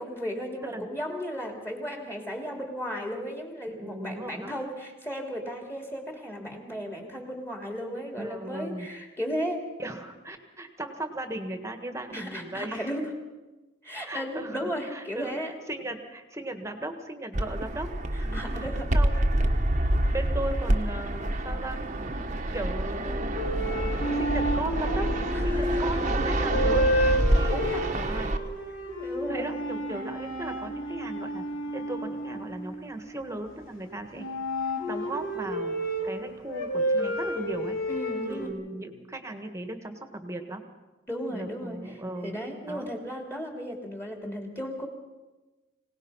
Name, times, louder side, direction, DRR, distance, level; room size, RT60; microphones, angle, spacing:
voice 1, 0.0-9.7 12.1-13.1 13.8-15.5 18.3-19.0 25.3-25.8 27.7-27.8 29.0-29.5 30.5-30.8 37.9-38.5 41.1-41.9 42.2-44.9, equal, 10° left, 2 dB, 3.0 m, -35 dB
voice 2, 3.7-4.5 8.2-8.9 9.8-12.9 14.1-19.6 20.1-21.9 22.2-26.9 27.5-28.3 29.3-31.5 31.7-34.3 34.6-37.8 38.3-40.6 41.3-42.4 42.7-42.9, right 1 dB, 15° right, 6 dB, 1.7 m, -37 dB
Fixed-wing aircraft airplane, 17.3-28.4, right 1 dB, 35° right, 1.2 m, -27 dB
sound 1, 23.3-33.5 34.1-38.5, equal, 80° left, 3.5 m, -30 dB
25.0 x 18.0 x 5.7 m, 1.1 s
head